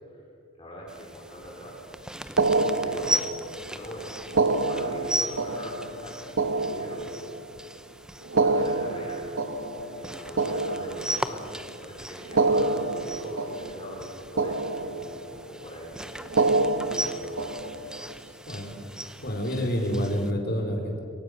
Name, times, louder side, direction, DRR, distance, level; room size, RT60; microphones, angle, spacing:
voice 1, 0.6-1.8 2.8-7.1 8.3-9.2 9.9-15.0 15.3-15.9 16.9-17.6, equal, 25° left, -3 dB, 4.7 m, -42 dB
sound 1, 0.9-20.3, right 1 dB, 5° right, 0.9 m, -38 dB
sound 2, 2.4-3.6 4.3-7.6 8.2-11.5 12.2-14.1 14.4-15.4 16.2-18.1, right 3 dB, 80° right, 1.4 m, -27 dB
voice 2, 18.5-18.8 19.2-21.0, equal, 50° left, 1 dB, 4.6 m, -28 dB
27.5 x 23.0 x 6.7 m, 2.5 s
head